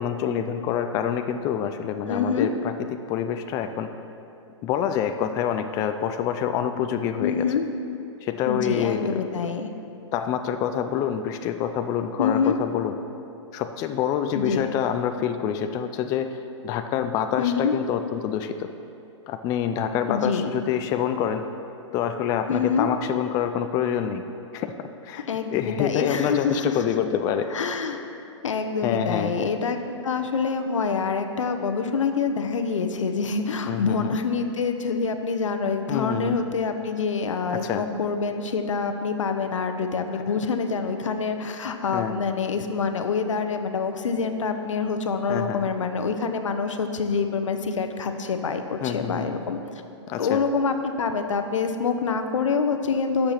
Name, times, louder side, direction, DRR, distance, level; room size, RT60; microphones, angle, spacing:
voice 1, 0.0-2.7 3.1-3.9 4.6-7.5 8.2-9.2 10.1-12.9 13.5-18.7 19.3-21.4 21.9-24.2 24.5-24.7 25.0-27.5 28.8-29.4 33.7-34.2 35.9-36.4 37.5-37.8 41.9-42.1 45.3-45.6 48.8-49.4 50.1-50.4, left 9 dB, 20° left, 8 dB, 0.4 m, -26 dB
voice 2, 2.1-2.5 7.2-7.7 8.5-9.7 12.2-12.7 14.3-14.7 17.4-17.8 20.1-20.5 22.5-22.9 25.3-26.8 27.5-28.0 28.4-49.6 50.2-53.3, left 5 dB, 90° left, 7 dB, 0.9 m, -26 dB
10.0 x 6.8 x 5.8 m, 2.7 s
hypercardioid pair, 145°, 16 cm